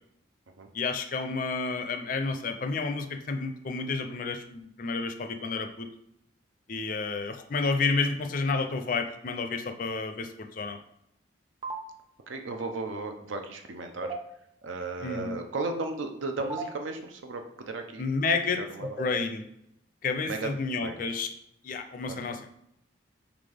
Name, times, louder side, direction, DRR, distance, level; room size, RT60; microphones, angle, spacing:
voice 1, 0.7-5.9 6.7-10.8 15.0-15.4 18.0-19.5 20.0-21.3 21.6-22.5, left 4 dB, 45° left, 7 dB, 0.4 m, -30 dB
sound 1, 11.6-11.8 14.0-14.2 16.4-16.7 18.8-19.2, right 3 dB, 20° right, 0.4 m, -34 dB
voice 2, 12.3-14.1 14.6-18.1 18.6-19.0 20.2-20.5 20.8-21.0 22.1-22.4, right 3 dB, 90° right, 5 dB, 0.6 m, -35 dB
4.0 x 3.5 x 3.4 m, 0.78 s
head